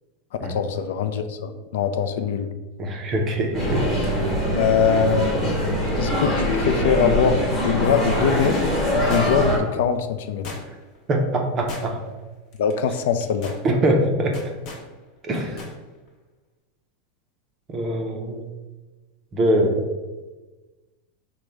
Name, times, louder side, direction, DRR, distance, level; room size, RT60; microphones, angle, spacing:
voice 1, 0.5-2.5 4.6-7.4 7.6-10.5 12.6-13.6, left 7 dB, 70° left, 9 dB, 0.4 m, -23 dB
voice 2, 2.8-3.8 11.1-12.0 13.6-14.4 15.2-15.6 17.7-18.4 19.3-19.8, right 1 dB, 20° right, 1 dB, 0.5 m, -22 dB
sound 1, 3.5-9.6, equal, 10° left, 1.1 m, -23 dB
sound 2, 9.1-9.6 10.4-11.0 11.7-12.2 12.5-12.7 13.2-13.6 14.3-14.9 15.6-15.8 16.1-16.2, left 3 dB, 40° left, 0.7 m, -37 dB
5.0 x 2.1 x 4.4 m, 1.2 s
supercardioid pair, 170°, 0 cm